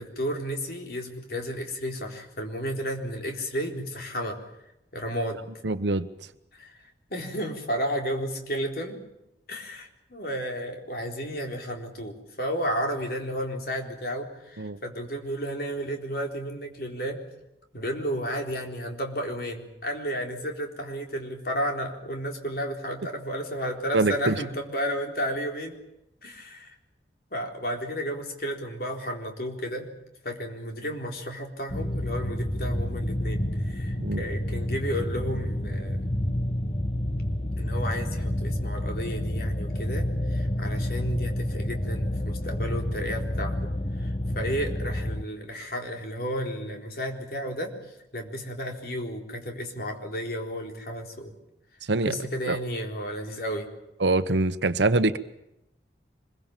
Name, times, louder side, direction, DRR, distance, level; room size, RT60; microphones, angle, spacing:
voice 1, 0.0-4.4 4.9-5.5 6.5-6.8 7.1-9.0 9.5-17.2 17.7-25.8 26.2-26.8 27.3-29.9 30.2-36.1 37.6-43.6 44.0-47.7 48.1-51.3 52.1-53.7, equal, 55° left, 2 dB, 4.1 m, -32 dB
voice 2, 5.6-6.3 14.6-14.8 23.9-24.4 34.0-34.2 51.9-52.2 52.5-52.6 54.0-55.2, right 2 dB, 75° right, 11 dB, 0.9 m, -24 dB
sound 1, 31.7-45.2, left 1 dB, 35° left, 1.2 m, -29 dB
25.5 x 22.0 x 7.4 m, 0.86 s
head